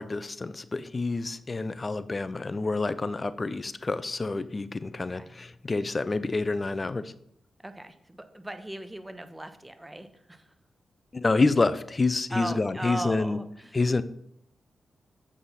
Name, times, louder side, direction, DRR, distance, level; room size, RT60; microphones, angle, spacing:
voice 1, 0.0-7.1 11.1-13.4 13.7-14.0, left 3 dB, 35° left, 15 dB, 0.5 m, -28 dB
voice 2, 5.0-5.3 7.6-10.5 12.3-13.8, right 1 dB, 15° right, 10 dB, 1.0 m, -38 dB
8.0 x 6.1 x 5.5 m, 0.74 s
cardioid pair, 55°, 0 cm